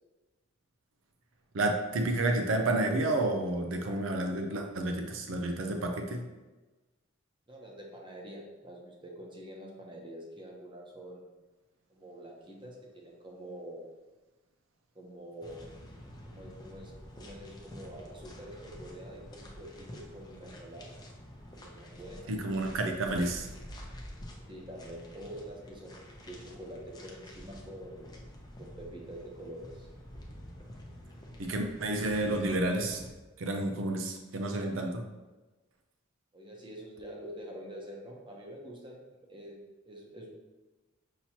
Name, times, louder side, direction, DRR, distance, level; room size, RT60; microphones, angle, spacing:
voice 1, 1.5-6.2 22.3-23.5 31.4-33.0 33.4-35.0, right 2 dB, 70° right, 3 dB, 0.5 m, -30 dB
voice 2, 7.5-11.3 11.9-13.9 14.9-15.7 16.2-20.9 21.5-22.3 24.5-28.2 28.6-29.9 36.3-39.0 39.3-39.6 39.8-40.3, equal, 25° right, -1 dB, 0.8 m, -46 dB
sound 1, 15.4-33.1, equal, 20° left, 0.6 m, -48 dB
5.7 x 2.9 x 2.8 m, 1.2 s
head